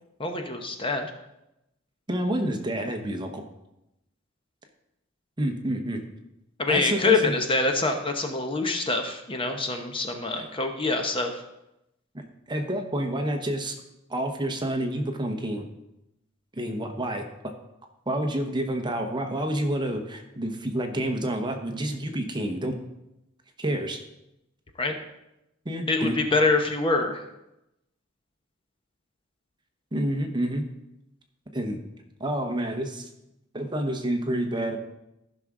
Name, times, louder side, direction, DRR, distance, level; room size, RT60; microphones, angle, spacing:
voice 1, 0.2-1.1 6.6-11.3 24.8-24.9 25.9-27.2, left 3 dB, 25° left, 5 dB, 0.8 m, -25 dB
voice 2, 2.1-3.4 5.4-6.0 6.7-7.4 10.4-10.5 12.1-13.7 14.1-15.7 16.5-17.2 18.1-22.7 23.6-24.0 25.6-26.2 29.9-30.6 31.5-31.8 32.2-33.1 33.5-34.8, right 1 dB, 20° right, 5 dB, 0.9 m, -28 dB
14.5 x 6.1 x 3.7 m, 0.89 s
head